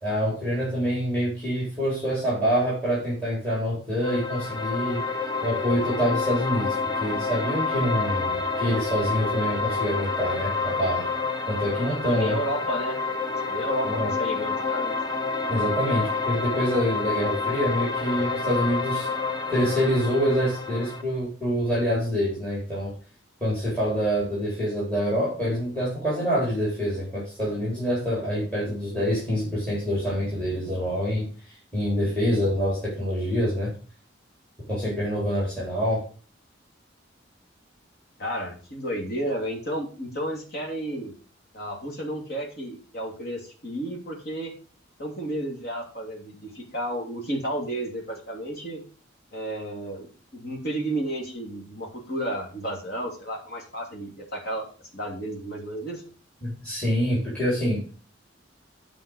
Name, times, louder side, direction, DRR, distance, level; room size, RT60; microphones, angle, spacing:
voice 1, 0.0-5.0 5.4-11.0 11.5-12.4 13.8-14.1 15.5-19.1 19.5-22.9 23.4-33.7 34.7-36.0 56.4-57.9, equal, 5° left, -7 dB, 3.9 m, -26 dB
sound 1, 4.0-21.0, left 4 dB, 25° left, 0.9 m, -28 dB
voice 2, 12.1-13.0 13.5-14.9 38.2-41.1 41.5-44.5 45.0-48.8 49.3-54.7 54.9-56.0, right 1 dB, 55° left, 0 dB, 2.7 m, -32 dB
9.2 x 5.1 x 6.2 m, 0.38 s
head